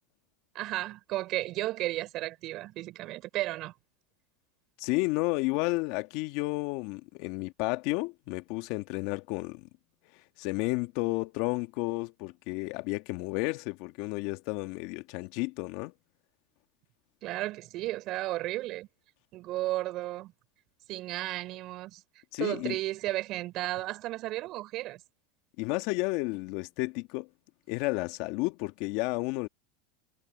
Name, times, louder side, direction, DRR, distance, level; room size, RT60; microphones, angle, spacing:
voice 1, 0.5-3.7 17.2-18.9 19.3-20.3 20.9-22.0 22.4-25.0, right 17 dB, 50° right, 4.2 m, -34 dB
voice 2, 4.8-9.7 10.4-15.9 22.3-22.8 25.6-27.3 27.7-29.5, left 23 dB, 60° left, 1.8 m, -32 dB
hypercardioid pair, 105°, 0 cm